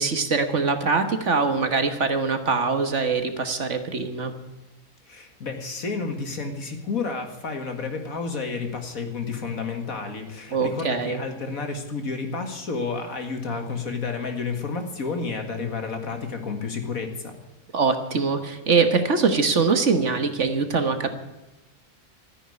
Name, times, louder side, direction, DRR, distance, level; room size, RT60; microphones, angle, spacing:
voice 1, 0.0-4.3 10.5-11.2 17.7-21.1, right 4 dB, 50° right, 8 dB, 1.6 m, -23 dB
voice 2, 5.1-17.3, left 4 dB, 60° left, 5 dB, 2.3 m, -31 dB
13.5 x 9.9 x 9.8 m, 1.0 s
omnidirectional pair, 1.7 m